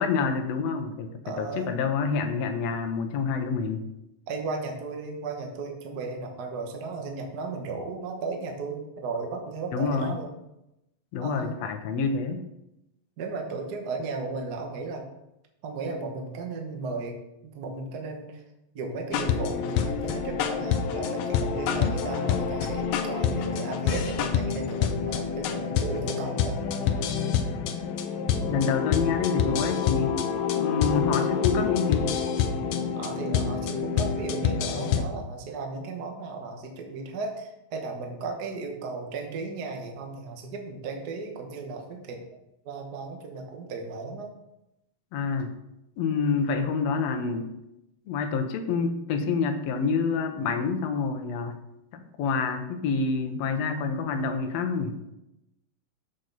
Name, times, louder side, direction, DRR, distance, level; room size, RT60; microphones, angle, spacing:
voice 1, 0.0-3.8 9.7-10.1 11.1-12.4 28.4-30.2 30.6-32.1 45.1-45.5 46.0-47.5 48.1-51.6 51.9-55.1, left 5 dB, 75° left, 6 dB, 1.7 m, -27 dB
voice 2, 1.2-1.7 4.3-10.3 11.2-11.6 13.2-15.0 15.6-18.4 18.7-26.6 33.0-42.2 42.6-44.3, right 3 dB, 65° right, 3 dB, 0.9 m, -35 dB
sound 1, 19.1-35.0, left 7 dB, 90° left, 1.4 m, -27 dB
7.5 x 6.4 x 4.0 m, 0.88 s
omnidirectional pair, 3.5 m